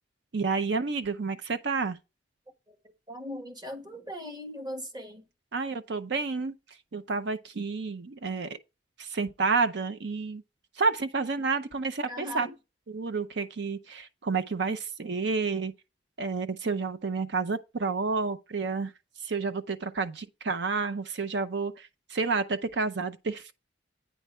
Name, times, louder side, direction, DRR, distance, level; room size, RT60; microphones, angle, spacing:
voice 1, 0.3-2.0 5.5-6.6 6.9-8.6 9.0-10.4 10.8-12.5 12.9-15.7 16.2-18.9 19.2-23.5, right 4 dB, 65° right, 0.6 m, -30 dB
voice 2, 3.1-5.2 12.1-12.5, left 1 dB, 20° right, 1.2 m, -39 dB
9.2 x 4.7 x 4.3 m
head